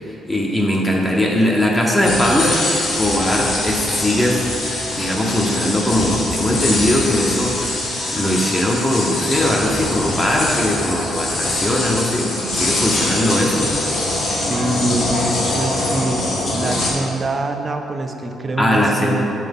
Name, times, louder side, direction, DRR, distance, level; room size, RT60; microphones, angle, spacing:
voice 1, 0.2-2.6 3.0-4.5 4.9-13.7 18.6-19.2, left 1 dB, 15° left, -2 dB, 0.8 m, -19 dB
sound 1, 2.0-16.9, left 2 dB, 60° left, 1.5 m, -23 dB
voice 2, 14.3-16.2 16.5-19.3, right 2 dB, 30° right, 5 dB, 0.5 m, -24 dB
6.9 x 5.8 x 3.6 m, 2.9 s
cardioid pair, 125°, 0 cm